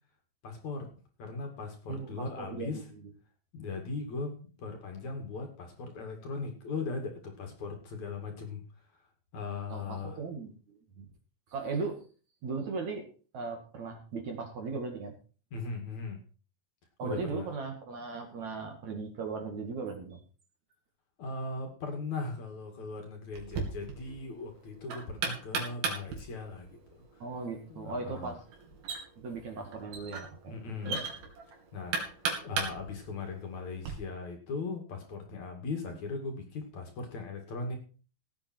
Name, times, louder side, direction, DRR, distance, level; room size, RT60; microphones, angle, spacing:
voice 1, 0.4-0.9 1.2-2.8 3.5-8.6 8.9-9.0 9.3-10.2 15.5-16.2 17.0-17.5 21.2-27.2 27.7-28.4 30.5-31.0 31.7-37.8, left 3 dB, 50° left, 4 dB, 3.4 m, -39 dB
voice 2, 1.9-2.7 9.7-10.6 11.0-11.1 11.5-12.0 12.4-13.1 13.3-15.1 17.0-20.2 27.2-28.4 29.2-30.6 30.8-31.0, right 4 dB, 50° right, 4 dB, 3.0 m, -37 dB
Knock, 23.3-33.9, right 5 dB, 70° right, 4.5 m, -38 dB
17.0 x 8.7 x 4.6 m, 0.38 s
omnidirectional pair, 4.5 m